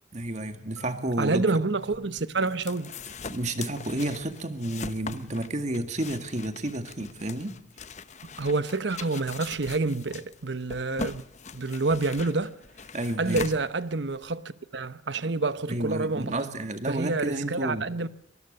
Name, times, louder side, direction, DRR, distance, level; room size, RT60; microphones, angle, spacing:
voice 1, 0.1-1.4 3.3-7.6 12.9-13.4 15.7-17.9, right 1 dB, 40° right, 2.0 m, -31 dB
Marimba xylophone, 0.8-4.6, right 1 dB, 5° right, 7.3 m, -49 dB
voice 2, 1.2-2.9 8.4-11.2 11.5-12.6 13.2-16.5 16.9-18.1, right 3 dB, 75° right, 1.0 m, -28 dB
sound 1, 1.8-14.3, left 4 dB, 40° left, 0.9 m, -41 dB
24.5 x 19.5 x 6.6 m
head